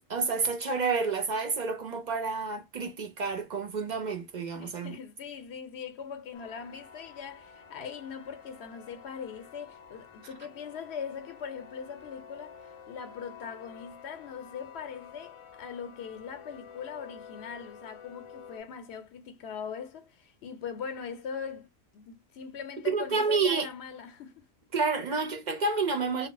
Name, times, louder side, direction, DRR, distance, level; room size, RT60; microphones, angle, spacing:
voice 1, 0.1-5.0 22.8-23.7 24.7-26.3, right 4 dB, 50° right, 0.6 m, -29 dB
voice 2, 4.6-12.6 12.9-24.5, left 6 dB, 85° left, 0.9 m, -41 dB
sound 1, 6.3-18.6, left 7 dB, 40° left, 0.5 m, -50 dB
2.1 x 2.0 x 3.7 m
omnidirectional pair, 1.1 m